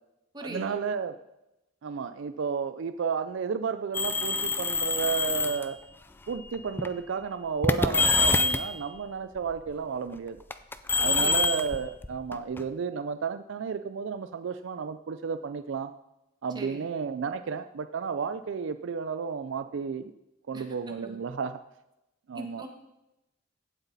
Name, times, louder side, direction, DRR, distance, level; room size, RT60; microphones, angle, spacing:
voice 1, 0.4-1.1 1.8-5.8 6.3-10.4 11.0-15.9 16.4-20.1 20.5-21.6 22.3-22.7, right 6 dB, 60° right, 11 dB, 0.4 m, -32 dB
sound 1, 3.9-5.6 6.5-6.9 7.6-8.7 10.5-12.6, left 3 dB, 10° left, 0.4 m, -25 dB
voice 2, 11.1-11.5 16.5-16.9 20.5-20.6 21.0-21.2 22.3-22.7, right 1 dB, 20° right, 3 dB, 1.4 m, -41 dB
16.0 x 8.1 x 4.0 m, 0.95 s
head